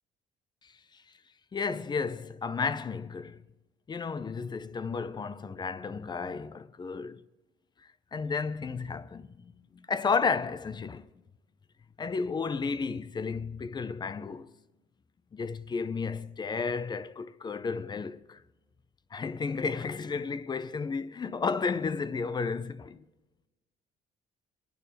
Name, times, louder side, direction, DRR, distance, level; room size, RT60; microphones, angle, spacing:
voice 1, 1.5-3.4 3.9-7.2 8.1-11.1 12.0-14.5 15.3-18.4 19.1-23.0, left 5 dB, 25° left, 0.6 m, -33 dB
23.5 x 9.3 x 4.2 m
cardioid pair, 110°, 17 cm